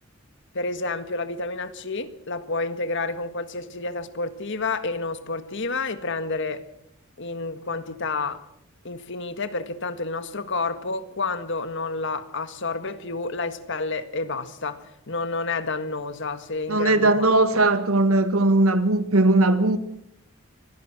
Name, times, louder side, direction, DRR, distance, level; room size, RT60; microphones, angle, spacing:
voice 1, 0.5-6.6 7.2-8.4 8.8-17.3, left 3 dB, 60° left, 1.7 m, -30 dB
voice 2, 16.7-19.8, right 2 dB, 90° right, 1.8 m, -19 dB
25.0 x 18.0 x 6.1 m
head